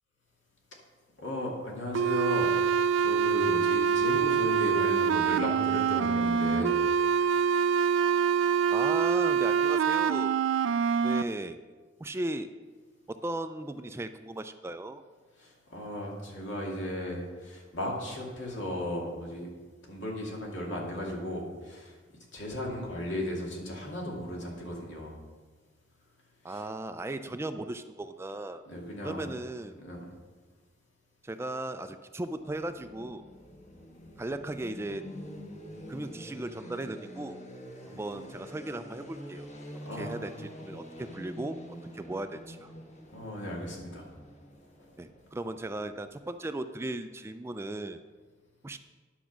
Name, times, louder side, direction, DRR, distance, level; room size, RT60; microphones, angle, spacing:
voice 1, 1.2-2.5 3.0-6.8 15.4-19.5 19.8-22.0 22.3-25.1 26.5-26.6 28.7-29.3 29.8-30.0 37.9-38.0 39.8-40.4 43.1-44.1 44.8-44.9, left 1 dB, 75° left, -1 dB, 2.3 m, -36 dB
sound 1, 1.9-11.2, right 7 dB, 90° right, 0.4 m, -25 dB
voice 2, 8.7-10.4 11.0-11.6 12.0-12.5 13.1-15.0 26.4-28.6 29.0-29.8 31.2-33.2 34.2-35.0 35.9-37.4 37.9-39.5 39.9-41.6 41.9-42.7 45.0-48.0 48.6-48.8, right 2 dB, 15° right, 9 dB, 0.3 m, -37 dB
sound 2, 32.3-46.2, equal, 40° left, 1.2 m, -46 dB
10.0 x 6.0 x 6.0 m, 1.4 s
head